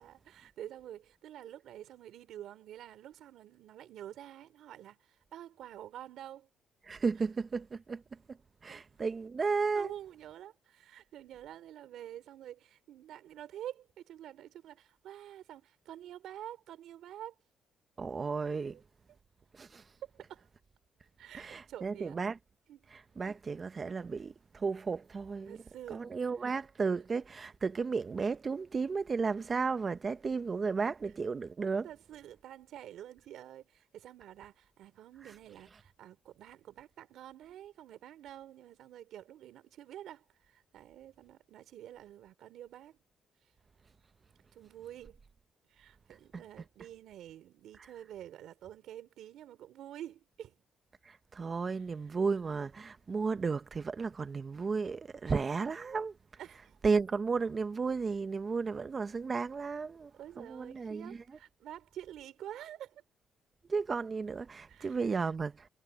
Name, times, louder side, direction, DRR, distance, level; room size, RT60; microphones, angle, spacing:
voice 1, 0.0-6.5 8.7-8.8 9.7-17.3 18.6-18.8 20.0-20.5 21.2-22.2 22.7-22.8 25.5-26.1 31.8-43.0 44.5-45.2 45.7-50.6 56.4-56.8 60.1-63.0 64.7-65.0, right 11 dB, 80° right, 3.6 m, -48 dB
voice 2, 6.9-8.4 8.6-9.9 18.0-18.8 19.5-19.8 21.3-22.4 22.9-25.6 25.9-31.9 46.3-46.4 51.0-56.2 56.8-60.1 60.4-61.2 63.7-65.7, right 4 dB, 35° right, 1.3 m, -33 dB
cardioid pair, 90°, 0 cm